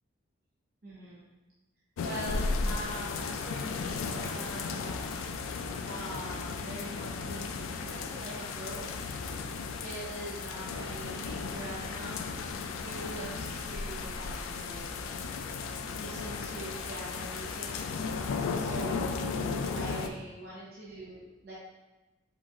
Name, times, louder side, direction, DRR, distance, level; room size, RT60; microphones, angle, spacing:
voice 1, 0.8-1.2 2.0-5.2 5.8-8.9 9.8-12.3 12.8-15.0 16.0-17.9 18.6-21.5, right 1 dB, 50° right, -8 dB, 0.7 m, -43 dB
sound 1, 2.0-20.1, left 4 dB, 80° left, 0.3 m, -35 dB
3.9 x 3.9 x 2.4 m, 1.1 s
head